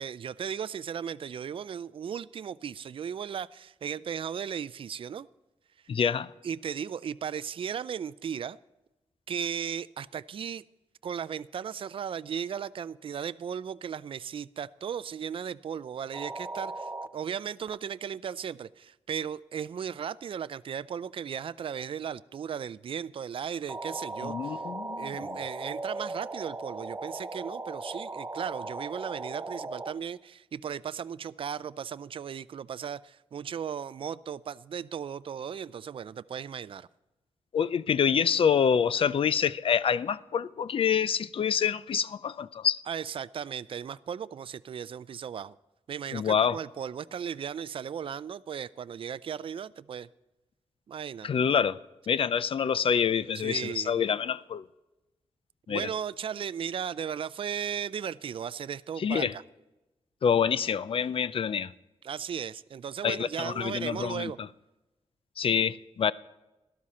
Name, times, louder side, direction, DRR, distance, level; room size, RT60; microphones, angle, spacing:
voice 1, 0.0-5.3 6.4-8.6 9.3-10.6 11.0-24.6 25.0-36.9 42.9-45.6 45.9-50.1 50.9-51.3 53.4-54.0 55.7-59.4 62.0-64.4, right 8 dB, 55° right, 0.4 m, -36 dB
voice 2, 5.9-6.3 24.2-25.3 37.5-42.8 46.1-46.6 51.2-51.8 52.1-54.6 55.7-55.9 59.0-59.3 60.2-61.7 63.0-64.3 65.4-66.1, left 7 dB, 55° left, 0.4 m, -26 dB
sound 1, 16.1-17.1 17.7-17.8 23.7-29.9, right 2 dB, 25° right, 0.7 m, -37 dB
13.0 x 12.5 x 4.2 m
wide cardioid pair, 100°, 11 cm